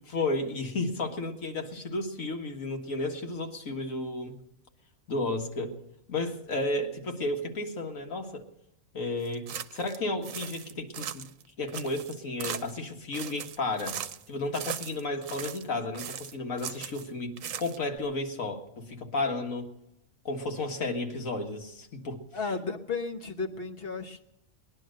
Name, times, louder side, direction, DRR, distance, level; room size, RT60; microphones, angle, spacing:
voice 1, 0.0-4.3 5.1-5.8 6.1-8.4 8.9-11.2 11.6-14.0 14.3-19.7 20.3-22.2, left 2 dB, 75° left, 3 dB, 2.1 m, -33 dB
sound 1, 9.3-10.0 10.2-11.4 11.7-12.9 13.1-14.3 14.5-15.7 15.9-17.1 17.4-18.0, right 9 dB, 75° right, 1.1 m, -39 dB
voice 2, 22.3-24.2, left 4 dB, 45° left, 4 dB, 1.3 m, -34 dB
20.5 x 10.5 x 6.5 m, 0.85 s
omnidirectional pair, 1.4 m